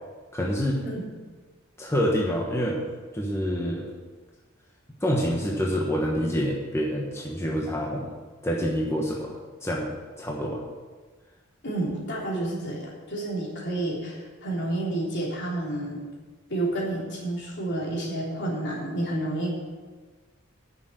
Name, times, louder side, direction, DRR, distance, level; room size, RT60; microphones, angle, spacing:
voice 1, 0.3-0.9 1.8-2.9 3.1-3.9 5.0-8.1 8.4-10.6, equal, 15° left, -2 dB, 1.2 m, -27 dB
voice 2, 11.6-16.0 16.5-19.7, right 1 dB, 60° left, -3 dB, 3.4 m, -30 dB
9.8 x 6.7 x 7.7 m, 1.4 s
head